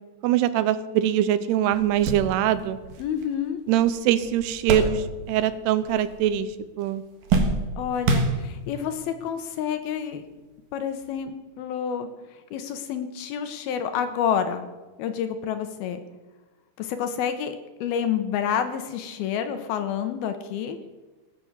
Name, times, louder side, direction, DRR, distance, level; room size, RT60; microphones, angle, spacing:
voice 1, 0.2-2.8 3.7-6.5 6.8-7.0, right 11 dB, 85° right, 13 dB, 2.6 m, -23 dB
sound 1, 1.2-1.3 1.7-5.5 5.8-6.5 6.8-8.9 9.6-9.7 11.0-11.2, right 3 dB, 60° right, 2.5 m, -28 dB
voice 2, 3.0-3.6 7.8-10.2 10.7-14.7 15.0-16.0 16.8-20.8, left 8 dB, 75° left, 8 dB, 2.5 m, -29 dB
18.5 x 8.2 x 7.3 m, 1.2 s
omnidirectional pair, 4.8 m